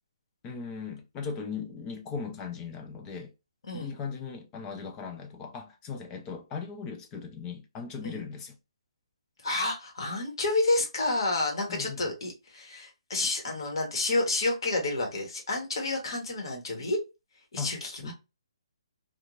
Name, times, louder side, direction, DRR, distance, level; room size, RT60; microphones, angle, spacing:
voice 1, 0.4-3.3 3.7-8.6 11.7-12.0 17.6-17.7 18.0-18.1, left 5 dB, 15° left, 0.4 m, -38 dB
voice 2, 9.4-17.0 17.5-18.1, left 2 dB, 55° left, 1.1 m, -29 dB
2.4 x 2.3 x 2.9 m
hypercardioid pair, 165°, 3 cm